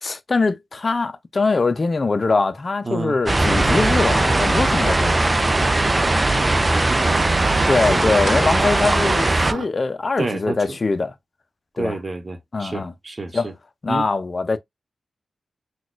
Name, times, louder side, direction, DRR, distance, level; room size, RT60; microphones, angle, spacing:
voice 1, 0.0-5.4 7.7-11.1 11.8-11.9 12.5-12.9 13.3-13.5 13.8-14.6, left 3 dB, 50° left, 0.5 m, -22 dB
voice 2, 2.8-3.2 6.4-7.5 7.9-8.0 8.4-8.7 10.2-10.8 11.8-13.5 13.9-14.1, right 3 dB, 40° right, 1.0 m, -30 dB
sound 1, 3.3-9.5, right 2 dB, 25° right, 0.4 m, -19 dB
sound 2, 3.4-6.1 7.0-9.6, right 6 dB, 90° right, 0.3 m, -31 dB
4.1 x 2.3 x 2.4 m
cardioid pair, 55°, 0 cm